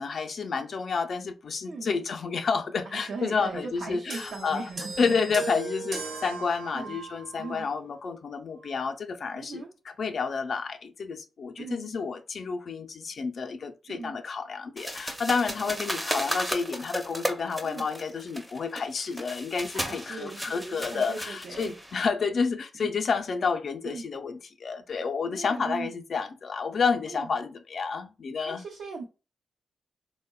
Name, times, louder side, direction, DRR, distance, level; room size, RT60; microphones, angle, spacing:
voice 1, 0.0-4.7 5.0-9.6 10.0-28.6, left 5 dB, 60° left, 0.3 m, -30 dB
voice 2, 2.8-5.2 6.7-7.0 7.4-7.7 9.4-9.7 11.6-11.9 13.9-14.2 15.6-16.0 17.6-17.8 19.7-21.8 22.7-22.9 23.8-24.1 25.3-25.9 27.1-27.3 28.5-29.0, right 4 dB, 75° right, 0.5 m, -39 dB
sound 1, 4.1-7.7 8.6-8.7, right 4 dB, 60° right, 1.0 m, -38 dB
sound 2, 14.8-22.1, equal, 5° right, 0.5 m, -35 dB
3.5 x 2.0 x 2.2 m
cardioid pair, 85°, 0 cm